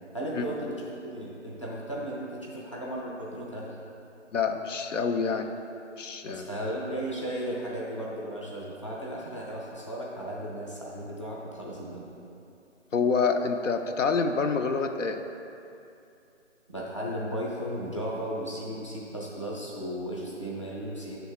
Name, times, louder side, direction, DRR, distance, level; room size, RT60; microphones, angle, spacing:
voice 1, 0.1-3.8 6.2-12.0 16.7-21.2, equal, 25° left, -5 dB, 0.5 m, -35 dB
voice 2, 4.3-5.5 6.0-6.5 12.9-15.2, left 5 dB, 80° left, 6 dB, 0.6 m, -27 dB
6.6 x 3.5 x 5.6 m, 2.7 s
hypercardioid pair, 170°, 37 cm